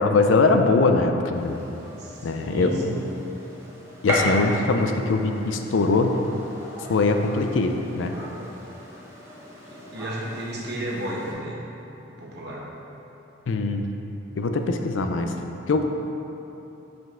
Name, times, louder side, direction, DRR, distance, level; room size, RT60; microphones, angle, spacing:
voice 1, 0.0-1.6 2.2-2.7 4.0-6.1 6.9-8.2 13.5-13.8 14.4-15.3 15.7-15.8, left 3 dB, 80° left, 5 dB, 0.4 m, -22 dB
Gunshot gunfire, 1.3-11.3, equal, 15° right, 1.0 m, -35 dB
voice 2, 2.0-3.1 9.9-11.6 12.2-12.7, right 1 dB, 55° right, -3 dB, 1.0 m, -32 dB
5.6 x 5.2 x 3.7 m, 3.0 s
head